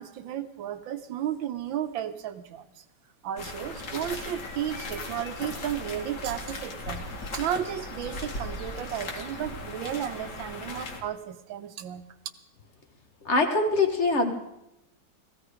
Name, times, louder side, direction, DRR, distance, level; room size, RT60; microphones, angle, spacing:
voice 1, 0.0-2.7 3.2-7.1 7.3-12.1, right 10 dB, 75° right, 10 dB, 1.6 m, -33 dB
sound 1, 3.4-11.0, left 2 dB, 60° left, 2.4 m, -37 dB
voice 2, 13.2-14.4, left 3 dB, 40° left, 5 dB, 1.4 m, -23 dB
17.0 x 15.5 x 5.0 m, 0.89 s
omnidirectional pair, 2.1 m